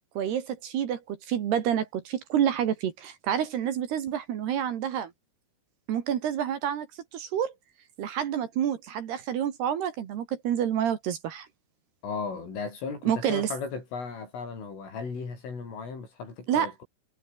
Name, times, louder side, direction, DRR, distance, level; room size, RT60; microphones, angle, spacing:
voice 1, 0.2-5.1 5.9-6.9 7.1-7.5 8.0-11.5 13.0-13.5 16.5-16.8, right 9 dB, 60° right, 3.6 m, -28 dB
voice 2, 12.0-16.8, left 5 dB, 75° left, 10.5 m, -36 dB
omnidirectional pair, 5.8 m